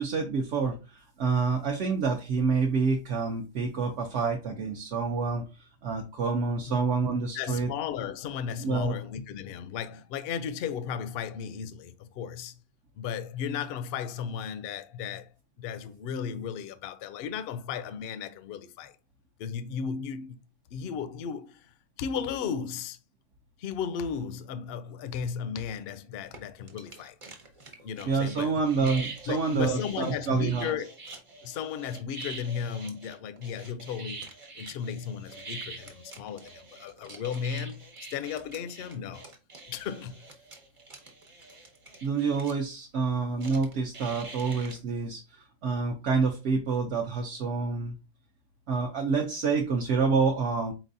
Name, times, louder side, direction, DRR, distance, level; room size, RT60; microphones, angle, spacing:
voice 1, 0.0-5.4 5.8-7.7 8.6-9.0 28.0-30.7 42.0-47.9 48.7-50.7, right 4 dB, 65° right, 1.0 m, -28 dB
voice 2, 7.3-12.6 13.0-15.3 15.6-18.9 19.4-20.4 20.7-21.7 22.0-23.0 23.6-27.2 27.8-28.5 28.8-28.9 29.3-30.9 31.4-34.2 34.6-39.3 39.7-40.3, left 7 dB, 60° left, 0.6 m, -35 dB
sound 1, 26.3-26.4 26.7-42.6 43.4-44.8, right 3 dB, 30° right, 0.8 m, -45 dB
4.4 x 4.0 x 2.6 m
omnidirectional pair, 1.4 m